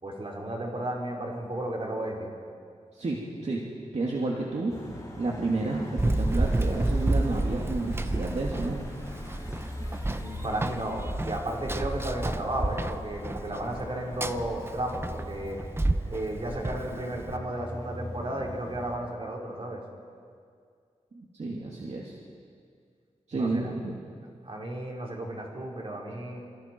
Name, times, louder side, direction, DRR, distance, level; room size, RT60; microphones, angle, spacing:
voice 1, 0.0-2.3 10.0-15.6 16.1-19.8 23.3-23.8 24.4-26.4, right 1 dB, 45° right, -2 dB, 4.8 m, -34 dB
voice 2, 2.9-3.6 3.9-4.9 5.2-8.8 21.1-22.1 23.3-23.9, right 2 dB, 65° right, -3 dB, 2.6 m, -31 dB
sound 1, 4.7-19.0, left 2 dB, 25° left, 5.0 m, -42 dB
Run, 6.0-17.4, right 2 dB, 20° right, 0.8 m, -30 dB
27.0 x 26.5 x 4.7 m, 2.2 s
wide cardioid pair, 85°, 12 cm